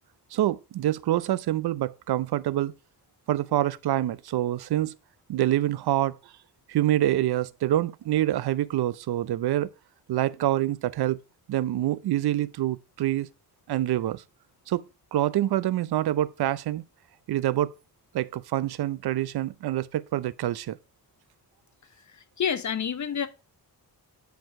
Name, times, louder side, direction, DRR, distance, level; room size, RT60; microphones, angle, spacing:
voice 1, 0.3-2.7 3.3-4.9 5.3-6.2 6.7-9.7 10.1-11.2 11.5-13.3 13.7-14.2 14.7-14.8 15.1-16.8 17.3-17.7 18.1-20.8, right 13 dB, 75° right, 0.6 m, -26 dB
voice 2, 22.1-23.3, left 7 dB, 45° left, 0.9 m, -29 dB
10.5 x 4.7 x 5.8 m
wide cardioid pair, 165°, 39 cm